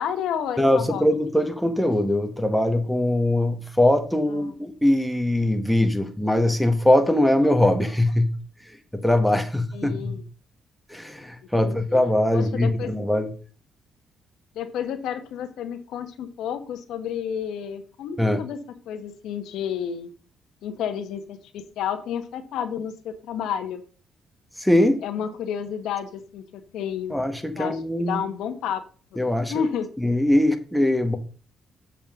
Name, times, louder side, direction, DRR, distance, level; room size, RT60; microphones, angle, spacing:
voice 1, 0.0-1.0 4.3-4.5 9.7-10.2 11.6-12.0 12.3-12.9 14.5-18.6 18.9-20.1 20.6-23.8 25.0-27.2 27.5-28.8 29.5-29.9, left 8 dB, 85° left, 9 dB, 1.0 m, -31 dB
voice 2, 0.6-8.3 8.9-10.2 10.9-13.3 18.2-18.4 24.6-25.0 27.1-28.2 29.2-29.6 30.0-31.2, left 1 dB, ahead, 6 dB, 1.2 m, -21 dB
7.3 x 7.0 x 3.6 m, 0.39 s
cardioid pair, 90°, 0 cm